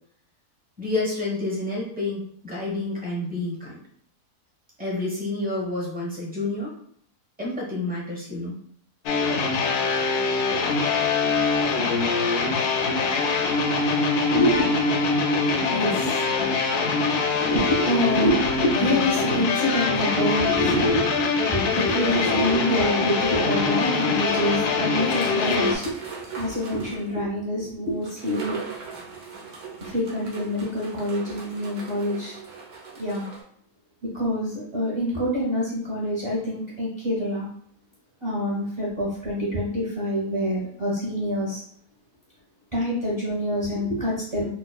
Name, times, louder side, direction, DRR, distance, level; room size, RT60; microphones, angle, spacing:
voice 1, 0.8-3.8 4.8-6.7 7.4-8.6, left 2 dB, 5° right, -4 dB, 0.8 m, -29 dB
sound 1, 9.1-25.8, left 4 dB, 75° left, 1.0 m, -23 dB
voice 2, 14.3-28.6 29.8-32.3 33.0-33.2 34.1-37.5 38.2-41.6 42.7-44.5, equal, 35° right, -7 dB, 0.5 m, -26 dB
sound 2, 25.1-27.1 28.0-33.4, right 5 dB, 65° right, 1.2 m, -40 dB
4.5 x 2.3 x 2.2 m, 0.64 s
omnidirectional pair, 1.7 m